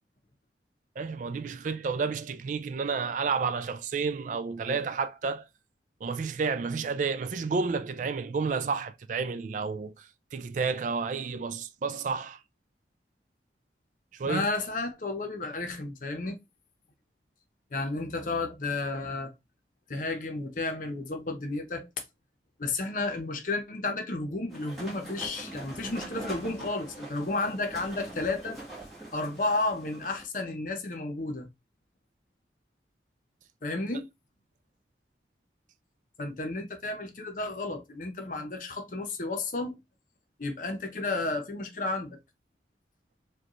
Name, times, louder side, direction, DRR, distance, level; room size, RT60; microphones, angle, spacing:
voice 1, 1.0-5.4 6.0-10.1 10.3-12.4 14.1-14.4, right 5 dB, 45° right, 0.3 m, -31 dB
voice 2, 14.2-16.4 17.7-19.3 19.9-21.9 22.6-28.6 29.1-31.5 33.6-34.1 36.2-39.8 40.4-42.2, left 2 dB, 50° left, 0.8 m, -32 dB
sound 1, 24.5-30.3, right 2 dB, ahead, 1.4 m, -43 dB
4.9 x 2.3 x 3.0 m
head